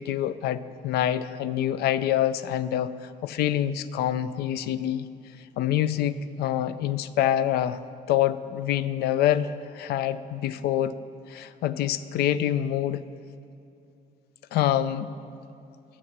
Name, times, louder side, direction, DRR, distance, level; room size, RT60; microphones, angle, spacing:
voice 1, 0.0-5.1 5.4-7.8 8.1-11.0 11.3-13.0 14.5-15.1, left 11 dB, 70° left, 15 dB, 0.4 m, -26 dB
8.6 x 7.1 x 6.0 m, 2.6 s
cardioid pair, 110°, 17 cm